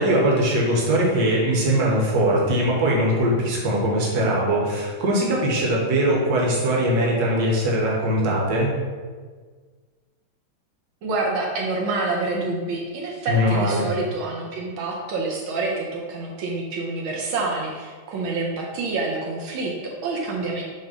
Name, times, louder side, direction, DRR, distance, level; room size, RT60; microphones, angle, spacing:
voice 1, 0.0-8.7 13.3-13.9, right 1 dB, 55° right, -3 dB, 1.6 m, -21 dB
voice 2, 11.0-20.6, right 3 dB, 80° right, -2 dB, 1.6 m, -27 dB
5.4 x 3.5 x 5.0 m, 1.5 s
omnidirectional pair, 2.3 m